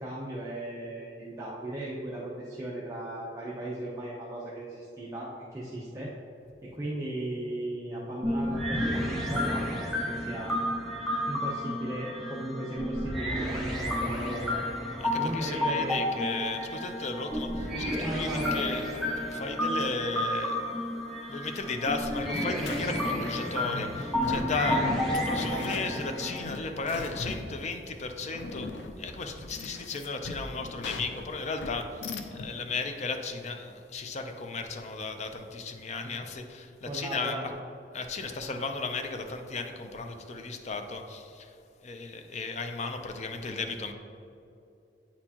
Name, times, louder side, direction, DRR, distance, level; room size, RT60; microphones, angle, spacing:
voice 1, 0.0-6.1 6.6-10.6 11.3-14.6 15.2-16.0 18.0-18.6 24.7-25.2 36.0-36.1 36.9-37.5, right 1 dB, 15° right, -6 dB, 0.6 m, -37 dB
sound 1, 8.2-26.4, left 1 dB, ahead, 1.1 m, -31 dB
voice 2, 15.0-18.9 19.3-20.7 21.3-24.9 25.1-28.7 29.0-37.5 37.9-41.5 41.8-43.9, left 3 dB, 40° left, 5 dB, 0.5 m, -35 dB
sound 2, 22.4-32.5, left 3 dB, 85° left, 0.5 m, -39 dB
8.7 x 4.4 x 2.8 m, 2.7 s
head